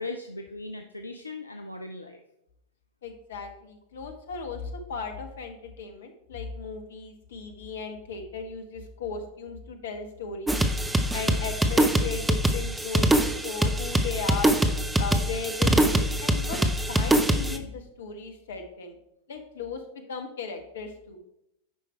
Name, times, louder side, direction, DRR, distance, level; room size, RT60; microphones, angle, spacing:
voice 1, 0.0-2.2, left 2 dB, 80° left, 5 dB, 0.5 m, -38 dB
voice 2, 3.0-10.6 11.1-14.6 15.0-19.0 19.3-21.2, left 5 dB, 60° left, 6 dB, 1.2 m, -36 dB
sound 1, 10.5-17.6, right 1 dB, 5° right, 0.7 m, -24 dB
9.0 x 5.2 x 4.3 m, 0.82 s
figure-of-eight pair, 90°, 0 cm